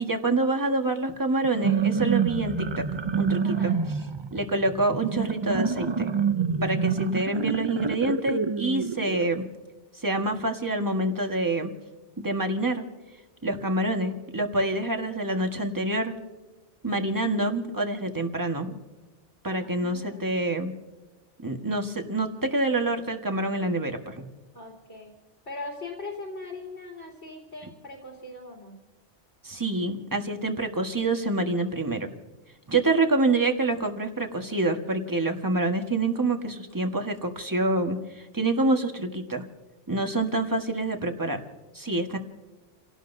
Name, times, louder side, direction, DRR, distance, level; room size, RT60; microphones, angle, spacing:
voice 1, 0.0-2.8 3.2-3.7 4.3-6.1 6.6-9.5 10.0-11.7 12.2-12.8 13.4-16.1 16.8-18.8 19.4-20.7 21.4-24.2 29.4-32.1 32.7-39.4 39.9-41.4 41.7-42.2, right 2 dB, 15° right, 4 dB, 1.5 m, -27 dB
sound 1, 1.4-9.3, right 6 dB, 45° right, 0.3 m, -27 dB
voice 2, 3.4-3.8 19.6-20.7 24.5-25.1 25.5-28.8, left 3 dB, 75° left, -2 dB, 3.6 m, -40 dB
29.5 x 17.5 x 2.7 m, 1.2 s
omnidirectional pair, 1.2 m